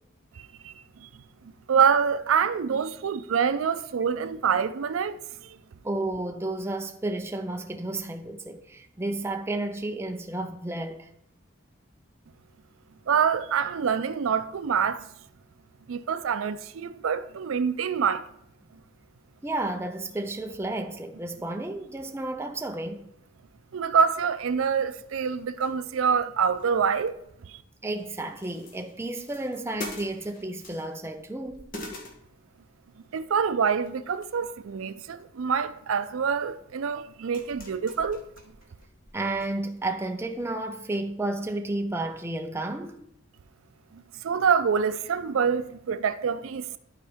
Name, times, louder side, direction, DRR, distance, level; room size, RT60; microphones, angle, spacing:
voice 1, 1.7-5.2 5.4-5.5 13.1-15.1 15.9-18.2 23.7-27.1 27.5-27.6 33.1-38.2 44.2-46.8, right 6 dB, 80° right, 0.4 m, -26 dB
voice 2, 5.8-11.1 19.4-23.1 27.8-31.7 39.1-43.1, right 2 dB, 10° right, 0.5 m, -32 dB
sound 1, 25.0-26.0 26.3-27.6 28.0-31.2 31.5-32.9 33.6-34.4 34.8-35.2 36.2-36.3 36.9-39.5 39.8-39.9 40.3-40.5, left 2 dB, 45° left, 1.1 m, -45 dB
12.0 x 4.4 x 3.6 m
head